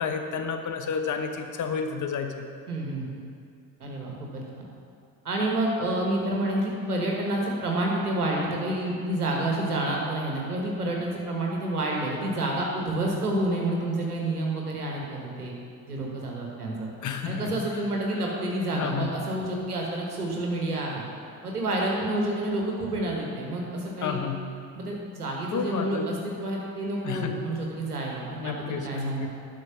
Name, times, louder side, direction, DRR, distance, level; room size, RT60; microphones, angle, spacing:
voice 1, 0.0-2.5 17.0-17.7 18.1-18.2 18.7-19.1 24.0-24.5 25.5-26.1 27.0-27.4 28.4-29.3, left 6 dB, 40° left, 5 dB, 1.0 m, -31 dB
voice 2, 2.7-3.2 3.8-4.7 5.2-15.5 15.9-16.9 17.2-21.0 21.4-24.2 24.7-29.3, right 1 dB, 85° right, -1 dB, 1.4 m, -29 dB
11.0 x 5.9 x 5.9 m, 2.3 s
figure-of-eight pair, 50°, 44 cm